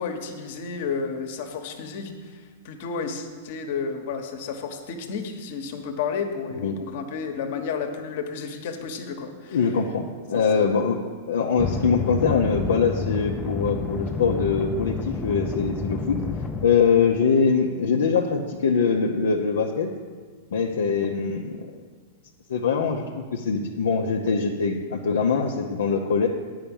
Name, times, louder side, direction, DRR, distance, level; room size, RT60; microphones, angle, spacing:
voice 1, 0.0-2.1 2.6-9.6 10.3-10.7, left 5 dB, 60° left, 5 dB, 1.2 m, -31 dB
voice 2, 9.5-16.2 16.6-19.9 20.5-21.7 22.5-26.3, left 5 dB, 75° left, 0 dB, 0.7 m, -23 dB
sound 1, 11.6-16.7, left 5 dB, 15° left, 0.6 m, -29 dB
8.8 x 5.7 x 7.1 m, 1.6 s
hypercardioid pair, 110°, 0 cm